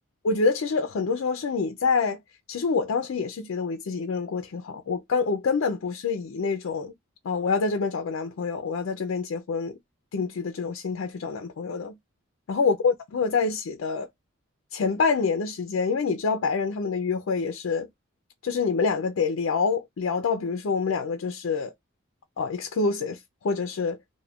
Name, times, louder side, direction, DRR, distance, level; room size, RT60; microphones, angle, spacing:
voice 1, 0.2-2.2 2.5-6.9 7.2-9.8 10.1-12.0 12.5-14.1 14.7-17.9 18.4-21.7 22.4-24.0, left 4 dB, 70° left, 0.4 m, -26 dB
2.3 x 2.1 x 3.4 m
head